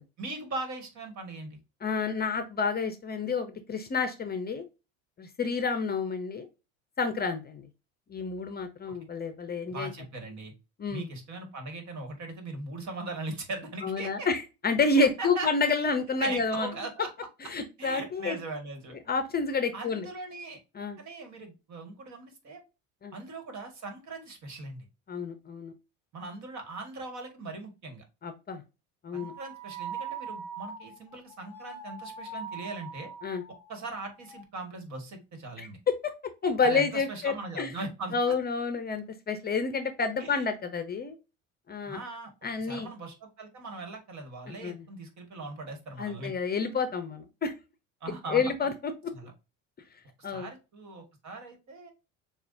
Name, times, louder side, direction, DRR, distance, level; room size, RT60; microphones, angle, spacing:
voice 1, 0.2-1.6 9.7-10.5 10.9-14.3 14.9-15.5 16.2-17.1 17.8-19.0 19.7-20.6 21.0-22.6 23.1-24.9 26.1-28.0 29.1-33.1 33.7-35.8 36.6-38.3 40.2-40.5 41.8-42.3 42.6-46.3 48.0-48.5 49.1-49.3 50.2-51.9, right 3 dB, 50° right, 5 dB, 1.8 m, -40 dB
voice 2, 1.8-4.6 5.2-6.5 7.0-7.7 8.1-9.9 10.8-11.1 13.8-16.7 17.5-18.4 19.1-20.1 20.7-21.0 23.0-23.1 25.1-25.7 28.2-28.6 29.0-29.3 33.2-33.4 35.6-36.1 36.4-37.7 38.1-41.2 41.7-42.0 42.4-42.9 44.5-44.8 46.0-47.5 48.3-49.1 50.2-50.5, left 4 dB, 25° left, 9 dB, 0.7 m, -29 dB
sound 1, 29.2-33.8 34.2-34.4, right 5 dB, 5° left, 1.4 m, -41 dB
6.8 x 2.4 x 2.6 m, 0.28 s
supercardioid pair, 90°, 37 cm